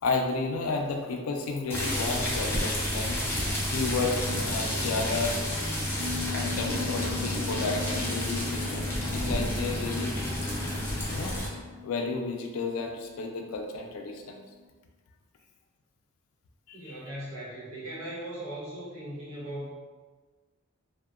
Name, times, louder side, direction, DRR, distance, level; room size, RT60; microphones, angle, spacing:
voice 1, 0.0-5.4 6.3-10.2 11.1-11.4 11.8-14.4 16.7-17.0, left 3 dB, 80° left, 3 dB, 0.4 m, -32 dB
sound 1, 1.7-11.5, left 1 dB, 10° left, 0.4 m, -30 dB
sound 2, 6.0-14.3 14.6-14.7, left 8 dB, 45° right, 0.5 m, -41 dB
voice 2, 16.7-19.7, right 1 dB, 80° right, -7 dB, 0.9 m, -38 dB
2.7 x 2.1 x 2.3 m, 1.4 s
head